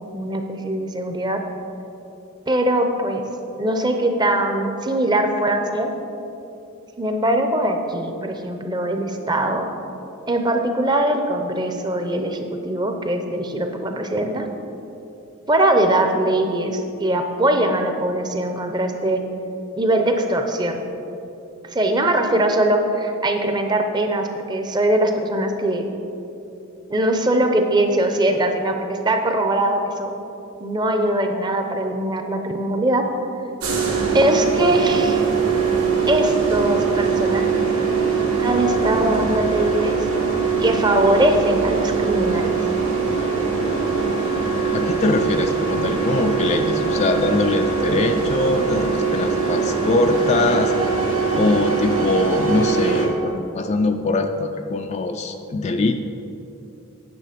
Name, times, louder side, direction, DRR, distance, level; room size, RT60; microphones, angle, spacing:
voice 1, 0.1-1.4 2.5-3.2 3.6-5.9 7.0-9.7 10.3-14.5 15.5-19.2 19.8-20.8 21.6-25.9 26.9-30.1 30.6-33.1 34.1-35.3 36.1-37.6 38.4-40.0 40.6-42.5, right 1 dB, 20° right, 5 dB, 0.6 m, -21 dB
sound 1, 33.6-53.1, right 5 dB, 85° right, 1.9 m, -22 dB
voice 2, 44.7-50.7 51.3-56.1, left 2 dB, 30° left, 6 dB, 0.3 m, -22 dB
9.2 x 6.7 x 5.1 m, 2.8 s
head